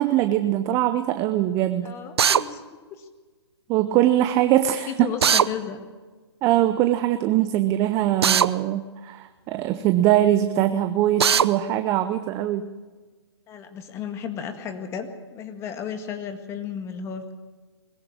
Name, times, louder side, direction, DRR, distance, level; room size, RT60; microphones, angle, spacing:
voice 1, 0.0-1.9 3.7-5.1 6.4-12.7, right 13 dB, 20° right, 10 dB, 0.7 m, -22 dB
voice 2, 1.8-2.6 2.9-3.1 4.9-5.8 9.7-9.9 13.5-17.3, left 7 dB, 20° left, 7 dB, 1.8 m, -34 dB
Drill, 2.2-2.4 5.2-5.5 8.2-8.5 11.2-11.5, right 8 dB, 65° right, 0.7 m, -18 dB
20.5 x 15.0 x 8.8 m, 1.4 s
hypercardioid pair, 140°, 14 cm